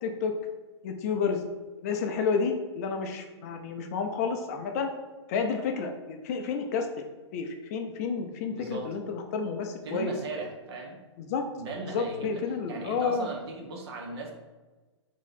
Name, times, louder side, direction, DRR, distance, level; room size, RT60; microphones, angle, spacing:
voice 1, 0.0-0.3 0.8-1.4 1.8-4.9 5.3-7.0 7.3-10.1 11.2-11.4 11.8-13.3, left 5 dB, 30° left, 4 dB, 0.3 m, -30 dB
voice 2, 8.5-9.0 9.8-11.0 11.6-12.4 12.7-14.3, right 3 dB, 55° right, 1 dB, 0.8 m, -37 dB
3.0 x 2.7 x 4.0 m, 1.2 s
hypercardioid pair, 145°, 16 cm